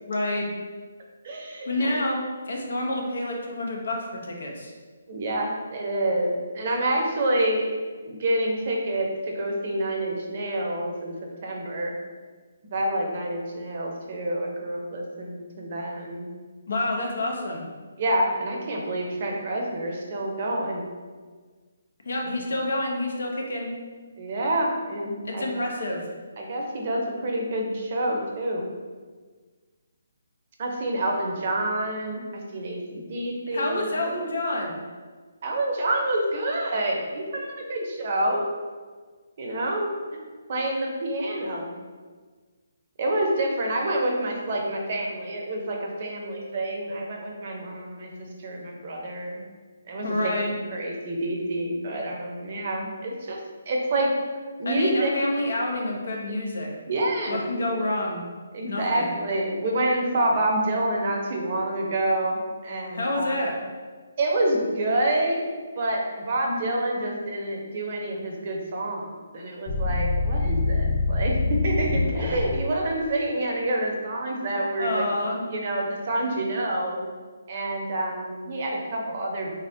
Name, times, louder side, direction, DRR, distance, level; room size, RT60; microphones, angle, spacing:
voice 1, 0.1-0.5 1.7-4.7 16.7-17.6 22.0-23.7 25.2-26.0 33.5-34.8 50.0-50.5 54.7-56.7 57.3-58.2 58.7-59.1 62.9-63.5 74.8-75.4, left 1 dB, 70° left, 0 dB, 0.7 m, -28 dB
voice 2, 1.2-2.0 5.1-7.7 8.0-11.9 12.7-16.3 18.0-20.8 22.2-22.4 24.2-25.5 26.4-28.6 30.6-33.9 35.4-38.4 39.4-39.9 40.5-41.7 43.0-49.4 49.9-53.4 53.7-54.1 54.6-55.1 56.9-57.4 58.5-63.3 64.2-75.1 75.5-77.0 77.5-79.5, right 1 dB, 45° right, 0 dB, 0.6 m, -27 dB
sound 1, 69.7-72.6, left 3 dB, 25° left, 0.3 m, -25 dB
3.8 x 2.1 x 2.7 m, 1.5 s
figure-of-eight pair, 145°, 0 cm